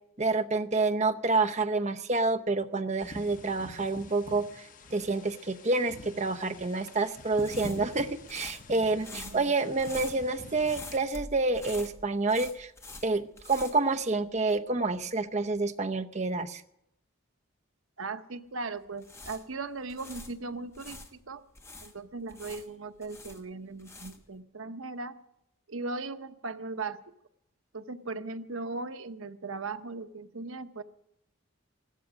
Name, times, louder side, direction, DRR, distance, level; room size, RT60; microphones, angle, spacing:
voice 1, 0.2-12.7 13.0-16.6, right 3 dB, 35° right, 7 dB, 0.8 m, -28 dB
sound 1, 3.0-11.0, left 1 dB, 40° left, 1.1 m, -47 dB
sound 2, 6.5-14.6 14.9-15.0 18.8-21.1 21.6-24.4, left 2 dB, 15° left, 1.3 m, -46 dB
voice 2, 9.1-9.5 18.0-21.4 21.8-25.2 25.7-27.0 27.7-30.8, right 3 dB, 80° right, 10 dB, 0.9 m, -38 dB
15.0 x 13.0 x 6.2 m, 0.79 s
head